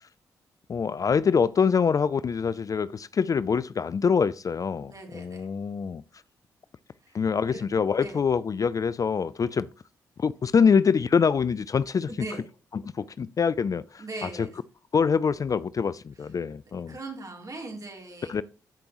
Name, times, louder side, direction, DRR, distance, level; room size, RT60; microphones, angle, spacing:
voice 1, 0.7-6.0 7.1-9.7 10.2-12.2 12.9-14.5 14.9-16.9 18.3-18.4, left 6 dB, 40° left, 0.4 m, -25 dB
voice 2, 4.9-5.5 7.0-7.2 7.5-7.6 8.0-8.2 12.1-12.4 14.0-14.6 16.2-16.3 16.9-18.3, right 2 dB, 40° right, 3.2 m, -40 dB
13.5 x 5.2 x 3.0 m
hypercardioid pair, 40°, 9 cm